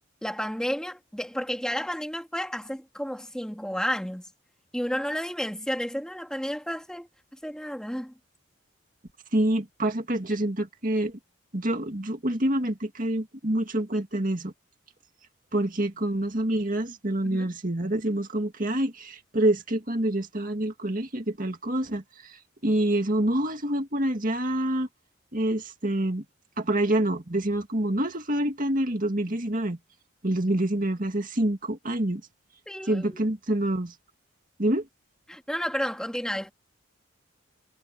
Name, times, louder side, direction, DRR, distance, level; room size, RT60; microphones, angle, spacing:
voice 1, 0.2-4.2 4.7-7.1 7.4-8.1 17.2-17.5 32.7-33.2 35.3-36.5, equal, 5° left, 2.1 m, -31 dB
voice 2, 9.3-11.2 11.5-14.5 15.5-24.9 25.3-26.2 26.6-29.8 30.2-32.2 32.9-33.9 34.6-34.9, right 1 dB, 40° right, 2.3 m, -27 dB
head